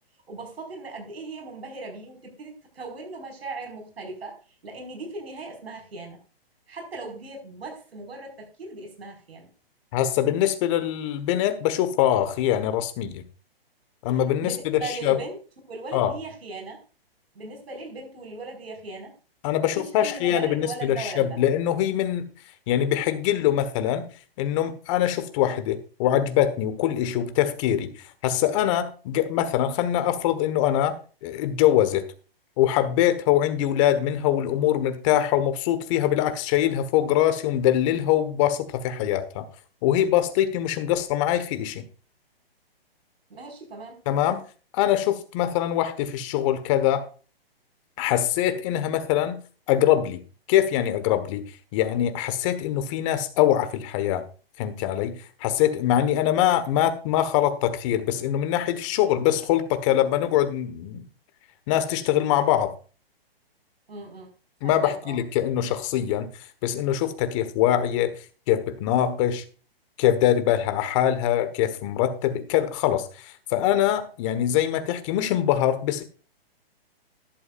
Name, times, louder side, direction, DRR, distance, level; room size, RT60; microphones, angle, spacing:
voice 1, 0.3-6.2 6.7-9.5 14.4-15.4 15.7-16.8 17.4-19.1 19.6-21.4 43.3-44.0 63.9-64.3 64.6-65.2, right 3 dB, 80° right, 5.3 m, -38 dB
voice 2, 9.9-13.2 14.0-15.2 15.9-16.1 19.4-22.2 22.7-24.0 24.4-31.0 31.2-32.0 32.6-39.5 39.8-41.8 44.1-44.4 44.7-47.1 48.0-49.4 49.7-50.2 50.5-54.3 54.6-61.0 61.7-62.7 64.6-66.3 66.6-68.1 68.5-69.4 70.0-76.0, left 11 dB, 30° left, 1.4 m, -23 dB
13.0 x 12.0 x 2.5 m
hypercardioid pair, 145°, 30 cm